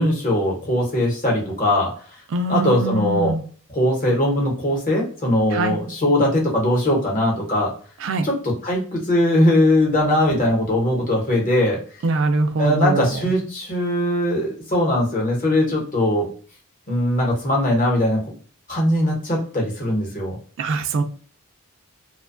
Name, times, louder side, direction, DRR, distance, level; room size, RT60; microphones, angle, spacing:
voice 1, 0.0-1.9 2.5-3.4 3.7-7.7 8.2-11.8 12.6-16.2 16.9-18.2 18.7-20.4, left 1 dB, 35° left, -2 dB, 0.9 m, -20 dB
voice 2, 2.3-3.4 5.5-5.8 8.0-8.3 12.0-13.1 20.6-21.0, right 3 dB, 60° right, 7 dB, 0.3 m, -22 dB
2.6 x 2.2 x 2.4 m, 0.43 s
head